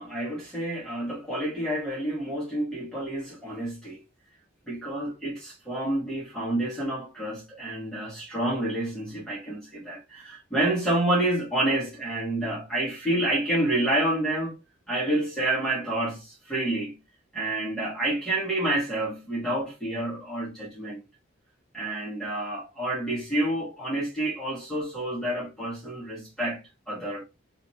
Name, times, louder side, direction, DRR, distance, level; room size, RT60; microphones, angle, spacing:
voice 1, 0.0-4.0 4.7-14.6 14.9-17.0 17.3-21.0 21.7-27.2, right 1 dB, 5° left, 1.8 m, -29 dB
4.0 x 2.9 x 3.1 m
head